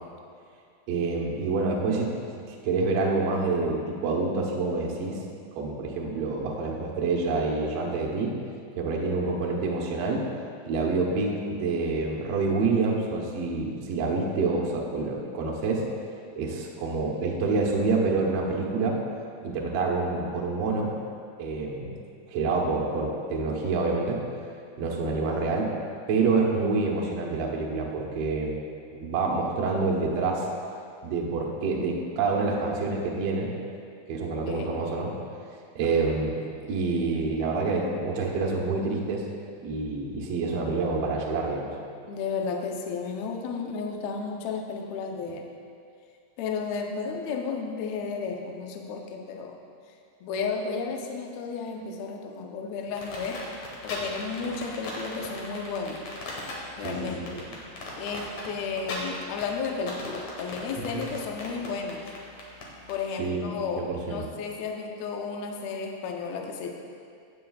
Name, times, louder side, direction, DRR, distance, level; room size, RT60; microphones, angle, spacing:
voice 1, 0.9-2.1 2.5-5.2 5.5-8.3 8.8-10.2 10.6-15.8 16.3-19.0 19.4-20.9 21.4-22.0 22.3-24.2 24.8-25.7 26.1-28.6 29.0-30.5 31.0-33.5 34.1-35.1 35.7-36.4 36.7-39.3 39.6-41.7 56.8-57.3 60.8-61.1 63.2-64.3, right 3 dB, 70° right, -2 dB, 1.5 m, -27 dB
voice 2, 34.4-34.8 42.1-45.5 46.4-49.5 50.2-53.4 53.8-56.0 56.8-57.4 58.0-62.0 62.9-66.7, left 5 dB, 85° left, 2 dB, 1.5 m, -33 dB
sound 1, 53.0-62.9, left 3 dB, 60° left, 2.2 m, -38 dB
16.5 x 7.0 x 2.4 m, 2.3 s
omnidirectional pair, 4.3 m